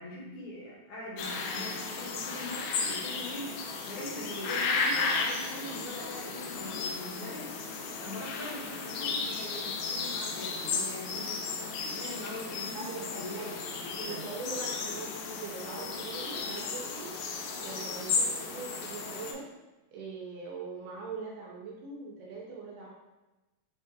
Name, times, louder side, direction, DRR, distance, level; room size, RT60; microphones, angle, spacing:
voice 1, 0.0-3.5 3.9-7.5 8.0-11.3 11.8-13.5 13.8-14.2, left 1 dB, 65° left, -5 dB, 2.2 m, -42 dB
sound 1, 1.2-19.3, left 4 dB, 85° left, 1.8 m, -34 dB
voice 2, 12.7-13.5 14.0-17.1 17.6-19.5 19.9-22.9, right 4 dB, 75° right, -3 dB, 2.1 m, -41 dB
6.4 x 2.4 x 2.7 m, 1.1 s
omnidirectional pair, 4.3 m